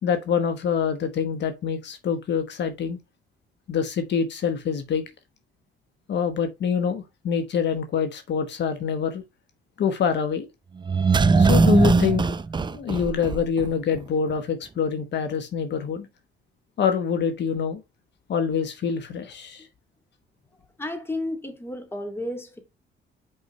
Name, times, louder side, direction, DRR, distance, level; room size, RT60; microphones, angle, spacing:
voice 1, 0.0-3.0 3.7-5.0 6.1-9.2 9.8-10.5 11.4-12.4 12.7-16.1 16.8-17.8 18.3-19.7, left 7 dB, 60° left, 1.1 m, -25 dB
sound 1, 10.8-13.7 14.0-14.1, right 4 dB, 25° right, 0.5 m, -20 dB
voice 2, 20.8-22.6, left 1 dB, 10° left, 2.0 m, -32 dB
5.6 x 5.4 x 3.1 m
cardioid pair, 90°, 20 cm